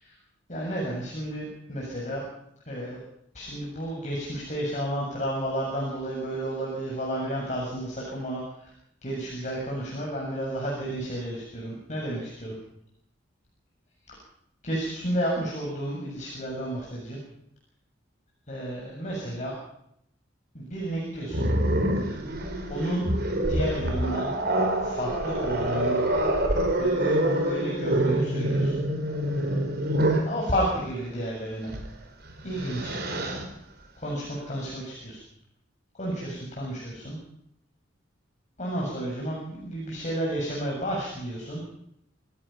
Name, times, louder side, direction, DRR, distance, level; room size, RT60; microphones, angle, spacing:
voice 1, 0.5-2.2 2.7-3.0 3.3-8.7 9.0-12.5 14.1-14.2 14.6-17.2 18.5-19.5 20.5-21.5 22.7-23.1 23.4-24.3 24.8-26.0 26.8-28.8 30.3-31.7 32.4-33.2 34.0-35.2 36.0-37.2 38.6-41.6, right 1 dB, 40° left, -3 dB, 7.3 m, -31 dB
Growling, 21.3-30.3 31.7-31.9 32.3-33.4, right 1 dB, 55° right, 4.8 m, -26 dB
27.5 x 16.5 x 5.8 m, 0.73 s
head